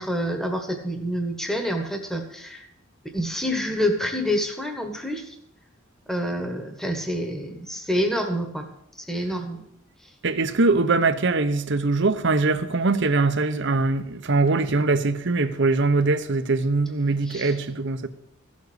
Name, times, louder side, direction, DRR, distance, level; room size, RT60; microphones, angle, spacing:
voice 1, 0.0-2.6 3.1-5.2 6.1-8.7 9.1-9.6 17.3-17.5, equal, ahead, 1.5 m, -27 dB
voice 2, 10.2-18.1, right 3 dB, 60° right, 0.9 m, -22 dB
15.5 x 7.3 x 8.0 m
head